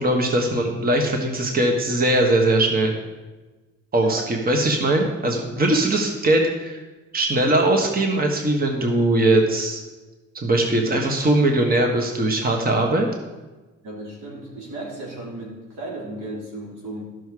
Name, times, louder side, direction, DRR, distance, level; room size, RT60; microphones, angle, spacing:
voice 1, 0.0-2.9 3.9-6.8 7.1-9.8 10.3-13.1, right 1 dB, 30° right, 2 dB, 1.3 m, -20 dB
voice 2, 13.8-17.0, right 2 dB, 90° right, -4 dB, 3.5 m, -35 dB
12.5 x 6.4 x 4.8 m, 1.2 s
cardioid pair, 115°, 31 cm